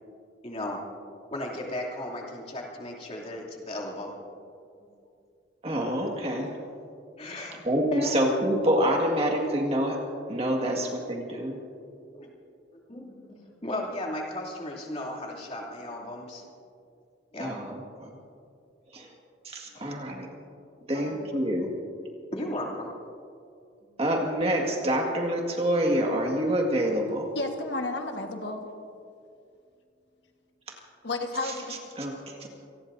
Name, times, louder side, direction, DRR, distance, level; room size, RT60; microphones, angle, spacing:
voice 1, 0.4-0.8 1.3-4.1 7.2-7.6 7.9-8.1 12.1-12.3 12.7-16.4 17.3-17.5 19.0-19.1 19.7-19.8 20.9-21.2 22.3-22.9, left 1 dB, 35° left, -2 dB, 2.9 m, -36 dB
voice 2, 5.6-6.5 7.6-10.0 10.3-11.6 17.4-18.2 18.9-19.1 19.4-20.3 20.9-21.7 24.0-27.3 30.7-30.8 31.4-31.5 32.0-32.5, equal, 35° right, 1 dB, 1.9 m, -27 dB
voice 3, 27.3-28.7 31.0-31.8, left 2 dB, 70° left, 4 dB, 1.5 m, -32 dB
28.0 x 19.5 x 2.7 m, 2.4 s
head